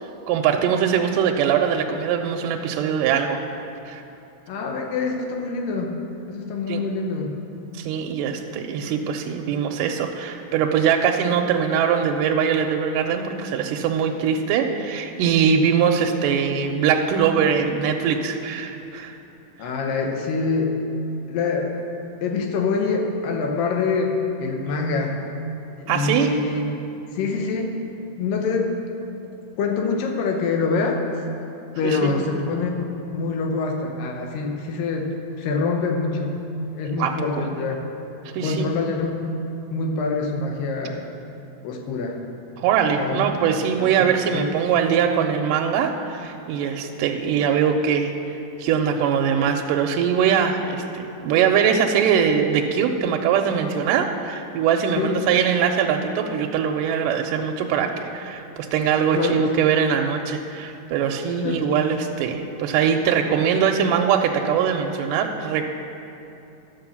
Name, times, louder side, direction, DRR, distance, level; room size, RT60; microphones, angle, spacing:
voice 1, 0.3-3.4 3.9-4.0 6.7-6.8 7.7-19.2 25.9-26.3 31.8-32.1 37.0-37.4 38.3-38.7 42.6-65.7, right 7 dB, 85° right, 3 dB, 2.1 m, -22 dB
voice 2, 4.5-6.0 6.3-7.3 16.0-16.4 19.6-20.8 21.3-21.8 22.2-25.2 25.8-26.7 27.1-27.8 28.2-28.8 29.6-31.2 31.8-32.9 33.1-36.4 36.7-37.8 38.4-39.2 39.7-41.0 41.6-42.2 42.9-43.3 44.3-44.5 55.0-55.2 59.1-59.6 61.4-61.7, left 4 dB, 85° left, 2 dB, 2.6 m, -25 dB
11.5 x 5.5 x 7.1 m, 2.8 s
omnidirectional pair, 3.8 m